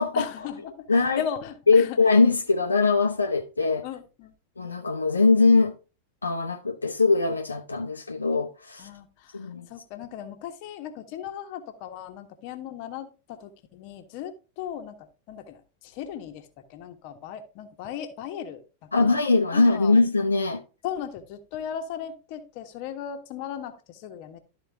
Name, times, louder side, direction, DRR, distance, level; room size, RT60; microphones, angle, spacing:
voice 1, 0.1-2.0 3.8-4.3 8.8-19.1 19.5-19.9 20.8-24.4, left 9 dB, 45° left, 1.3 m, -37 dB
voice 2, 0.9-1.2 1.7-3.8 4.6-5.7 6.2-8.9 9.3-9.7 18.9-20.6, left 3 dB, 80° left, 0.8 m, -21 dB
12.5 x 4.4 x 3.5 m
figure-of-eight pair, 90°, 0 cm